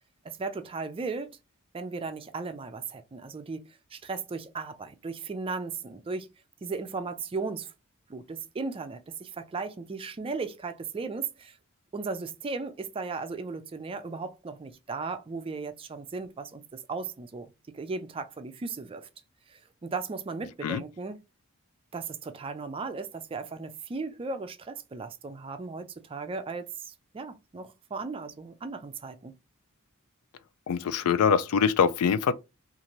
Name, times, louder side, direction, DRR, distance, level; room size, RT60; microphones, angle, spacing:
voice 1, 0.2-1.3 1.7-3.6 3.9-6.3 6.6-7.7 8.1-11.6 11.9-19.1 19.5-21.2 21.9-29.4, right 4 dB, 25° right, 0.4 m, -36 dB
voice 2, 30.7-32.3, left 6 dB, 90° left, 0.3 m, -23 dB
2.6 x 2.5 x 3.0 m
head